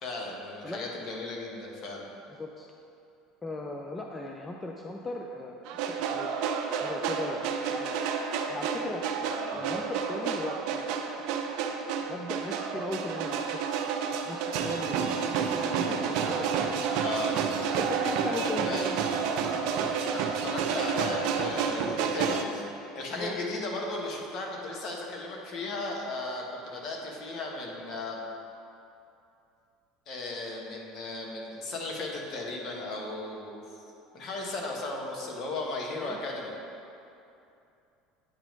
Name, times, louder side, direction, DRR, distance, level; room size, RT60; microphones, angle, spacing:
voice 1, 0.0-2.1 9.4-9.7 17.0-17.5 18.3-19.0 20.1-28.2 30.1-33.8 34.1-36.5, left 2 dB, 50° left, -1 dB, 1.2 m, -36 dB
voice 2, 2.3-2.7 3.4-5.5 6.0-6.3 6.8-8.1 8.5-9.0 9.5-11.3 12.1-13.4 14.3-17.0 17.7-19.0 23.2-23.4 35.9-36.2, left 2 dB, 20° left, 1 dB, 0.5 m, -38 dB
sound 1, 5.7-22.4, right 6 dB, 65° right, 0.5 m, -30 dB
8.6 x 3.0 x 5.3 m, 2.7 s
hypercardioid pair, 90°, 0 cm